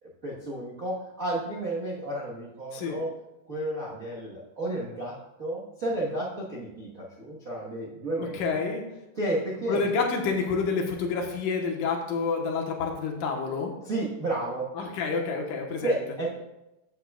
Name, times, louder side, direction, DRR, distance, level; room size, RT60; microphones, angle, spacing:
voice 1, 0.0-3.1 3.5-8.5 9.1-9.8 13.8-14.7 15.8-16.4, right 1 dB, 55° right, -8 dB, 0.9 m, -32 dB
voice 2, 8.2-8.8 9.7-13.7 14.8-16.0, left 4 dB, 85° left, 1 dB, 2.8 m, -28 dB
13.5 x 7.7 x 2.4 m, 0.94 s
omnidirectional pair, 3.7 m